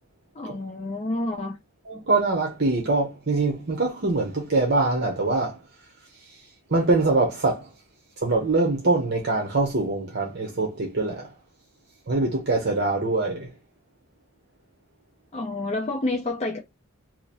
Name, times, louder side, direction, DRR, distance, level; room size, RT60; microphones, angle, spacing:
voice 1, 0.3-1.6 15.3-16.6, left 2 dB, 30° left, 0.6 m, -29 dB
voice 2, 1.9-5.6 6.7-7.7 8.2-11.3 12.1-13.5, right 3 dB, 50° right, 0.9 m, -23 dB
3.0 x 2.5 x 4.0 m
head